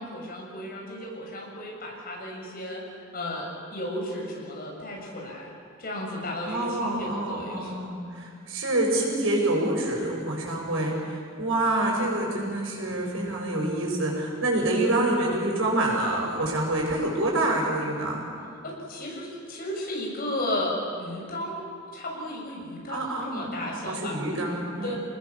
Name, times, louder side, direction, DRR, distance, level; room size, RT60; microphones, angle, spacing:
voice 1, 0.0-5.5 5.8-7.7 18.6-21.6 21.9-24.2 24.8-25.0, left 1 dB, 50° left, -1 dB, 6.9 m, -34 dB
voice 2, 6.4-18.2 22.9-23.5 23.9-25.0, right 1 dB, 80° right, -1 dB, 7.0 m, -27 dB
29.0 x 20.0 x 7.3 m, 2.4 s
head